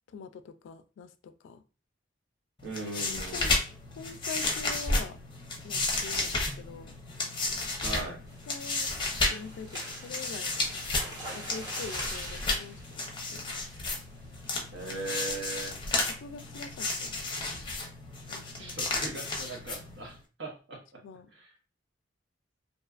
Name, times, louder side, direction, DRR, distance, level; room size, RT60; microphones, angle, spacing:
voice 1, 0.1-1.6 3.3-3.6 4.0-5.2 5.6-7.0 7.6-7.7 8.5-8.9 9.3-10.7 11.0-13.5 16.0-17.3 18.3-18.8 21.0-21.3, left 5 dB, 80° left, 10 dB, 0.3 m, -44 dB
sound 1, 2.6-20.2, left 2 dB, 25° left, 0.6 m, -33 dB
voice 2, 2.6-3.5 7.8-8.2 14.7-15.8 18.6-20.8 21.4-21.5, right 2 dB, 70° right, 0 dB, 0.9 m, -39 dB
sound 2, 8.3-14.0 14.5-14.7 15.0-15.1 15.5-15.8, right 1 dB, 25° right, 0.9 m, -44 dB
2.6 x 2.3 x 2.3 m, 0.34 s
head